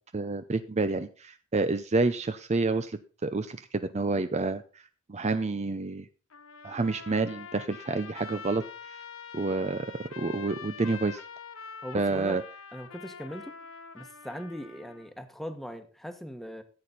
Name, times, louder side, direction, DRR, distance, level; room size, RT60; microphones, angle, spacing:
voice 1, 0.1-4.6 5.1-6.1 6.6-8.6 9.3-11.2 11.9-12.4, right 3 dB, 35° right, 10 dB, 0.6 m, -29 dB
Trumpet, 6.3-15.1, left 5 dB, 85° left, 1.4 m, -45 dB
voice 2, 11.8-12.4 12.7-13.6 13.9-16.6, equal, ahead, 8 dB, 1.3 m, -40 dB
14.5 x 8.5 x 4.0 m, 0.36 s
head